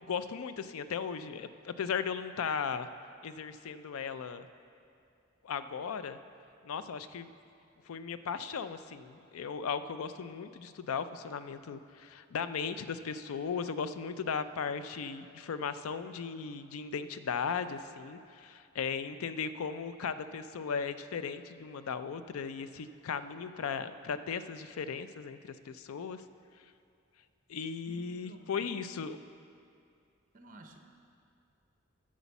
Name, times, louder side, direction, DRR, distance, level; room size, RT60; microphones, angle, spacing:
voice 1, 0.1-2.9 3.2-4.5 5.4-6.2 6.6-7.3 7.9-26.2 27.5-29.2, left 6 dB, 85° left, 12 dB, 0.4 m, -37 dB
voice 2, 27.9-29.0 30.3-30.8, right 1 dB, 40° right, 4 dB, 0.8 m, -54 dB
8.2 x 6.3 x 7.0 m, 2.4 s
head